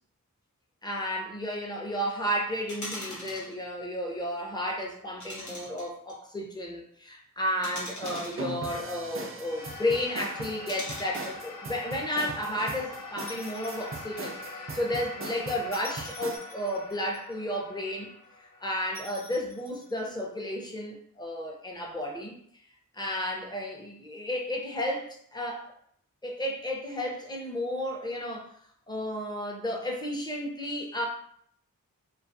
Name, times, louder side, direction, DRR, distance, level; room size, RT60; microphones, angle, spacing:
voice 1, 0.8-18.1 18.6-22.3 22.9-25.7 26.2-28.5 28.9-31.1, equal, 10° left, -1 dB, 0.7 m, -32 dB
sound 1, 2.7-3.6 5.2-6.1 7.6-9.1 10.7-11.4 13.2-13.9 14.3-14.4 15.7-17.3 18.9-20.1, left 1 dB, 60° left, 1.0 m, -42 dB
sound 2, 8.0-16.4, right 3 dB, 40° right, 0.5 m, -40 dB
sound 3, 9.3-19.9, left 3 dB, 75° left, 0.6 m, -44 dB
2.5 x 2.3 x 2.6 m, 0.65 s
cardioid pair, 45°, 33 cm